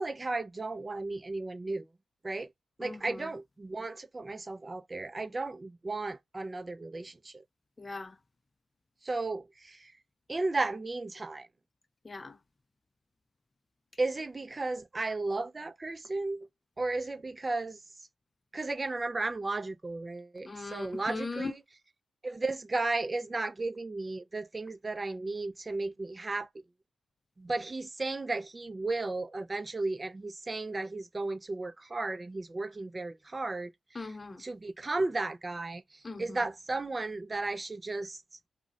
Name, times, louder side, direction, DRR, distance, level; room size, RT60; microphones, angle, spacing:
voice 1, 0.0-1.9 2.2-2.5 2.8-7.4 9.0-9.9 10.3-11.5 14.0-16.5 16.8-17.8 18.5-21.6 22.2-26.5 27.4-33.7 34.4-38.2, right 2 dB, 35° right, 0.3 m, -34 dB
voice 2, 2.8-3.3 7.8-8.2 12.0-12.4 20.4-21.5 33.9-34.4 36.0-36.4, left 3 dB, 35° left, 0.4 m, -39 dB
2.4 x 2.0 x 3.8 m
supercardioid pair, 45°, 0 cm